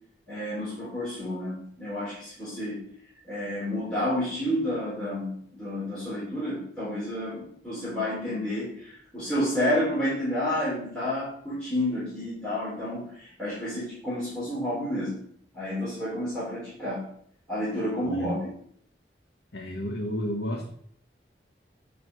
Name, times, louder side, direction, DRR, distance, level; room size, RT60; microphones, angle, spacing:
voice 1, 0.3-2.8 3.3-15.2 15.5-17.1 17.5-18.5, left 1 dB, 5° left, -10 dB, 3.3 m, -30 dB
voice 2, 18.0-18.4 19.5-20.7, equal, 70° left, 1 dB, 1.2 m, -32 dB
8.3 x 5.0 x 6.1 m, 0.64 s
head